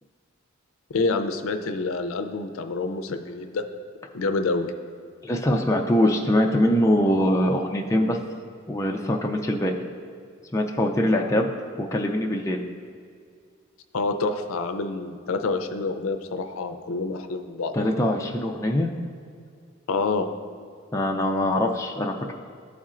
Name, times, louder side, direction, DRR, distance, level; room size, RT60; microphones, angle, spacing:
voice 1, 0.9-3.6 4.1-4.7 13.9-17.7 19.9-20.3, left 3 dB, 75° left, 7 dB, 0.5 m, -27 dB
voice 2, 5.2-8.2 8.7-9.7 10.5-11.5 11.8-12.6 17.7-18.9 20.9-22.3, left 1 dB, 15° left, 0 dB, 0.4 m, -23 dB
12.0 x 4.2 x 2.4 m, 2.2 s
head